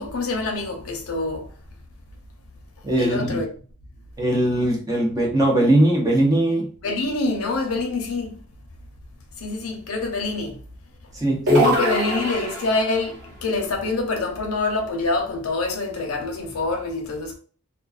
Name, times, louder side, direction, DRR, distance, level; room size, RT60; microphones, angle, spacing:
voice 1, 0.0-1.4 3.0-3.5 6.8-8.4 9.4-10.6 11.6-13.1 13.4-17.4, left 3 dB, 85° left, 0.6 m, -25 dB
voice 2, 2.8-3.4 4.2-6.7 11.1-11.8, right 1 dB, 15° right, 0.6 m, -20 dB
sound 1, 11.5-13.0, equal, 55° right, 0.8 m, -22 dB
2.3 x 2.3 x 2.3 m
head